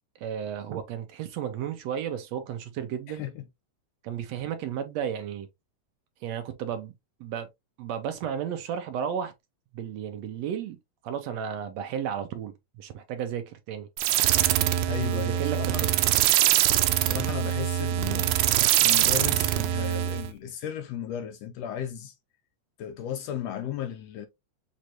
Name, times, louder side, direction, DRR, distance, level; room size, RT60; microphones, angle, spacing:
voice 1, 0.2-3.2 4.0-5.5 6.2-6.9 7.2-7.5 7.8-9.3 9.7-10.8 11.0-13.9 15.0-16.0, right 9 dB, 70° right, 1.9 m, -33 dB
voice 2, 3.1-3.4 14.9-15.9 17.0-18.4 18.8-22.1 22.8-24.3, left 10 dB, 75° left, 1.7 m, -35 dB
sound 1, 14.0-20.3, right 13 dB, 90° right, 2.0 m, -23 dB
6.4 x 2.6 x 2.9 m
omnidirectional pair, 3.3 m